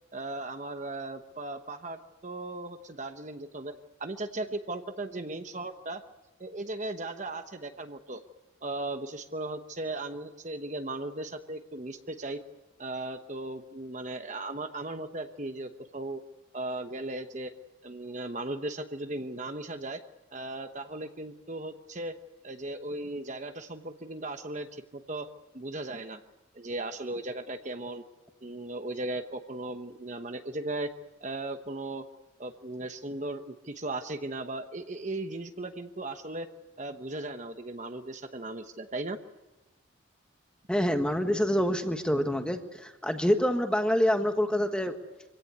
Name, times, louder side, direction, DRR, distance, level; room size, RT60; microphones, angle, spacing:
voice 1, 0.1-3.7 4.0-6.0 6.4-8.2 8.6-12.4 12.8-16.2 16.5-17.5 17.8-20.0 20.3-22.1 22.4-25.3 25.5-26.2 26.5-28.0 28.4-30.9 31.2-32.0 32.4-36.5 36.8-39.2 41.3-41.4, right 2 dB, 35° right, 7 dB, 1.0 m, -37 dB
voice 2, 40.7-45.0, equal, 5° left, 6 dB, 1.4 m, -26 dB
25.0 x 17.0 x 9.5 m, 1.1 s
head